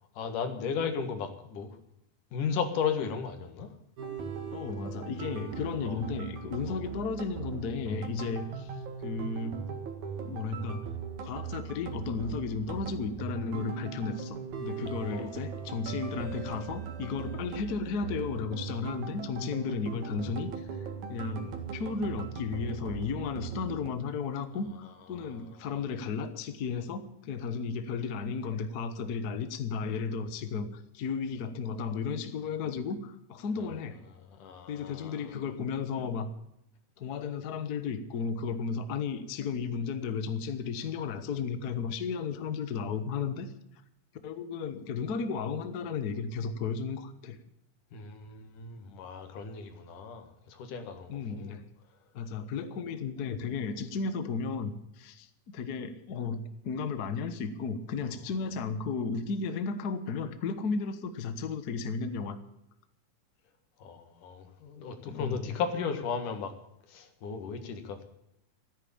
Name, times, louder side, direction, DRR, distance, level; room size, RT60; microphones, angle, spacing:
voice 1, 0.2-1.8 2.3-3.7 5.8-6.0 6.7-6.8 15.1-15.3 34.4-35.2 47.9-51.5 63.8-66.5 66.9-68.0, left 6 dB, 85° left, 7 dB, 3.3 m, -35 dB
sound 1, 4.0-23.9, right 6 dB, 70° right, 3.2 m, -39 dB
voice 2, 4.5-8.7 9.0-9.6 10.2-10.8 11.2-20.7 21.1-34.0 34.7-36.3 37.0-43.5 44.2-47.4 51.1-51.6 52.1-62.4 65.1-65.6, left 5 dB, 60° left, 10 dB, 1.0 m, -34 dB
14.0 x 10.0 x 8.7 m, 0.82 s
omnidirectional pair, 3.5 m